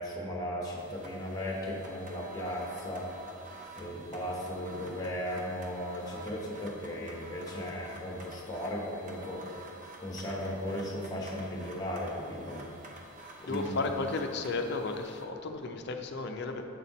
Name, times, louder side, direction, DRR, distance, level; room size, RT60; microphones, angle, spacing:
voice 1, 0.0-3.2 3.8-9.5 10.0-12.6 13.4-13.7, equal, 15° left, -3 dB, 0.9 m, -36 dB
sound 1, 0.8-15.2, right 2 dB, 35° right, 0.6 m, -50 dB
voice 2, 13.5-16.7, left 3 dB, 50° left, 5 dB, 0.4 m, -34 dB
7.6 x 4.2 x 4.0 m, 3.0 s
head